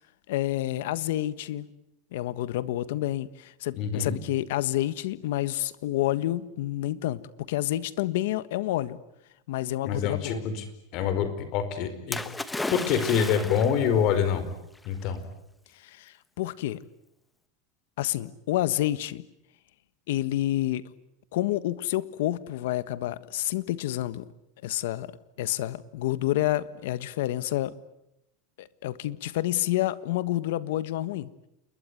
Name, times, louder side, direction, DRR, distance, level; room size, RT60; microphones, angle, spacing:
voice 1, 0.3-1.7 2.1-9.0 9.5-10.5 15.8-16.8 18.0-19.2 20.1-20.8 21.3-24.3 24.6-25.1 25.4-27.7 28.6-31.3, left 14 dB, 80° left, 1.4 m, -29 dB
voice 2, 3.7-4.2 9.8-10.6 10.9-12.2 12.7-14.5 14.8-15.2, left 7 dB, 45° left, 4.8 m, -26 dB
Splash splatter, 12.1-13.9 14.8-14.9, left 2 dB, 5° left, 1.2 m, -34 dB
29.0 x 22.0 x 9.5 m
supercardioid pair, 160°, 0 cm